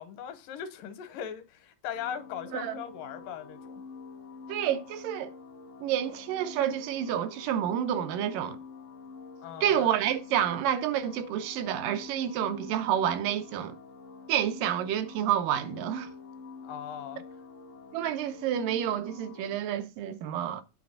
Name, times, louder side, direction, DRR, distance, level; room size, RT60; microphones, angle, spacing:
voice 1, 0.0-3.8 9.4-9.9 16.6-17.2, left 9 dB, 80° left, 2.6 m, -39 dB
sound 1, 1.9-19.6, left 4 dB, 55° left, 0.8 m, -46 dB
voice 2, 4.5-5.3 5.8-8.6 9.6-13.8 14.3-16.1 17.9-20.6, right 10 dB, 90° right, 2.4 m, -29 dB
9.2 x 3.4 x 6.6 m
omnidirectional pair, 3.8 m